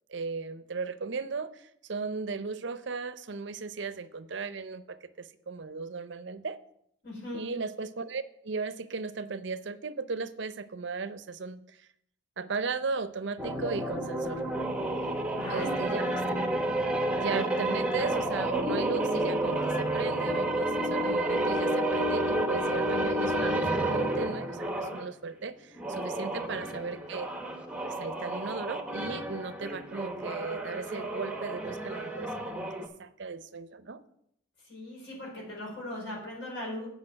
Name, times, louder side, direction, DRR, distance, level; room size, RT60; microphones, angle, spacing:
voice 1, 0.1-6.6 7.3-11.9 12.4-14.4 15.5-16.2 17.2-27.3 27.8-34.0, right 4 dB, 60° right, 13 dB, 0.6 m, -36 dB
voice 2, 7.0-7.4 15.0-16.1 26.2-26.3 34.7-36.9, left 1 dB, 65° left, -2 dB, 4.7 m, -39 dB
sound 1, 13.4-25.1 25.7-32.9, right 1 dB, 5° right, 0.8 m, -30 dB
8.5 x 5.2 x 7.6 m, 0.74 s
head